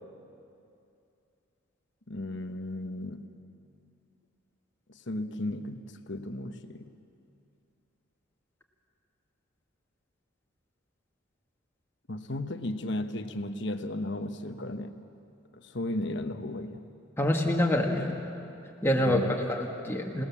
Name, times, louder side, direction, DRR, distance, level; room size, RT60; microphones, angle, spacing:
voice 1, 2.1-3.3 5.1-6.9 12.1-15.0 15.6-16.8 19.0-19.3, left 1 dB, 60° left, 8 dB, 1.1 m, -35 dB
voice 2, 17.2-18.1 18.8-20.2, left 1 dB, 10° left, 0 dB, 1.9 m, -26 dB
27.0 x 18.5 x 7.3 m, 2.7 s
head